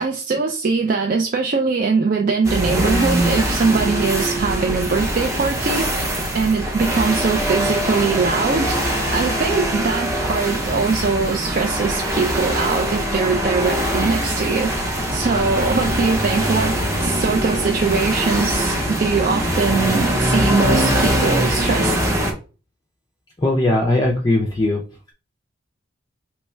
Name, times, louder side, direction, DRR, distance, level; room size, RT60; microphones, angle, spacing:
voice 1, 0.0-6.1 6.3-8.8 9.1-14.7 15.1-21.9, right 4 dB, 40° right, 0.3 m, -21 dB
sound 1, 2.4-22.3, equal, 15° right, 0.7 m, -22 dB
voice 2, 23.4-24.8, left 2 dB, 20° left, 0.4 m, -19 dB
3.1 x 2.3 x 4.3 m
head